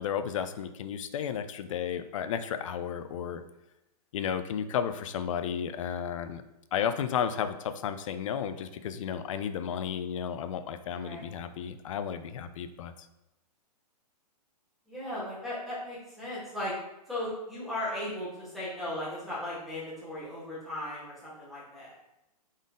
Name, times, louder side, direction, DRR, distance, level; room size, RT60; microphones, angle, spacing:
voice 1, 0.0-3.4 4.1-6.4 6.7-12.9, left 8 dB, 50° left, 10 dB, 0.4 m, -33 dB
voice 2, 14.9-16.7 17.1-21.9, left 1 dB, ahead, -8 dB, 1.5 m, -37 dB
4.0 x 3.7 x 3.7 m, 0.90 s
hypercardioid pair, 150°, 21 cm